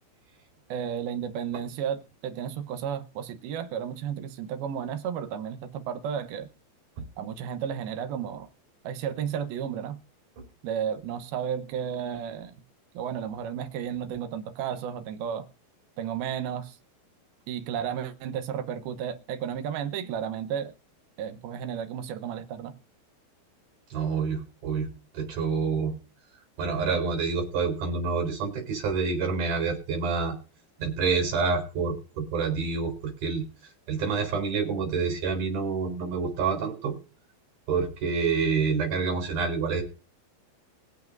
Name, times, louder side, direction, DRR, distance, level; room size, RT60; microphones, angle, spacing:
voice 1, 0.7-6.5 7.2-8.5 8.8-10.0 10.6-12.6 12.9-15.5 16.0-16.8 17.5-20.7 21.2-22.8, right 8 dB, 75° right, 2.7 m, -33 dB
voice 2, 23.9-26.0 26.6-30.4 30.8-33.5 33.9-36.9 37.7-39.8, right 5 dB, 50° right, 5.3 m, -28 dB
22.5 x 8.4 x 2.6 m
omnidirectional pair, 4.8 m